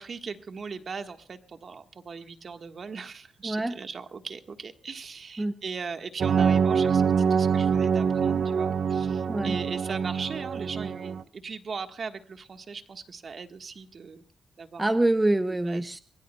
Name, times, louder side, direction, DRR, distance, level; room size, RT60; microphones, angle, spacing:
voice 1, 0.0-7.0 7.3-14.2 14.6-14.9 15.6-16.0, right 5 dB, 55° right, 7 dB, 1.4 m, -39 dB
voice 2, 3.4-3.7 5.4-5.5 9.3-9.6 14.8-16.0, right 1 dB, 15° right, 10 dB, 0.7 m, -25 dB
sound 1, 6.2-11.2, right 6 dB, 70° right, 0.8 m, -25 dB
23.5 x 20.5 x 2.3 m, 0.41 s
cardioid pair, 75°, 0 cm